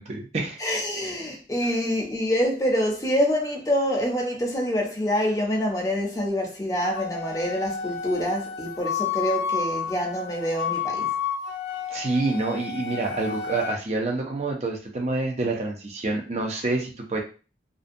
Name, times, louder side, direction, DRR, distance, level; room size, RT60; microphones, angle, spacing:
voice 1, 0.0-0.6 11.9-17.2, right 3 dB, 35° right, 0.5 m, -27 dB
voice 2, 0.6-11.1, equal, 20° left, 0.5 m, -26 dB
Wind instrument woodwind instrument, 7.0-13.8, left 7 dB, 75° left, 0.4 m, -31 dB
2.5 x 2.1 x 2.5 m
head